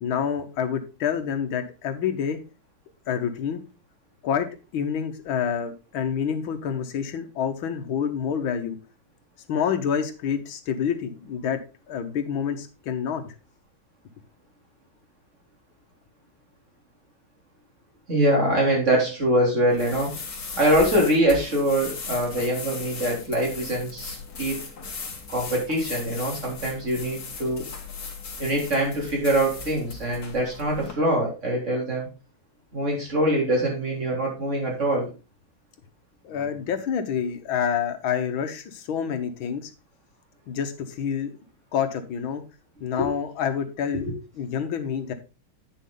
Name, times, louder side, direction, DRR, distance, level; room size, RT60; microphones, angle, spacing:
voice 1, 0.0-2.4 3.1-3.6 4.2-4.5 4.7-8.8 9.5-11.6 11.9-13.3 36.2-39.7 40.5-41.4 41.7-42.4 42.8-44.1 44.4-45.1, left 7 dB, 75° left, 8 dB, 1.8 m, -27 dB
voice 2, 18.1-20.2 20.5-24.6 25.3-27.6 28.4-32.1 32.7-35.1 43.0-43.1 44.1-44.2, right 1 dB, 35° right, -1 dB, 3.6 m, -24 dB
sound 1, 19.7-30.9, left 4 dB, 50° left, 2.1 m, -37 dB
9.3 x 6.3 x 3.8 m, 0.30 s
omnidirectional pair, 2.3 m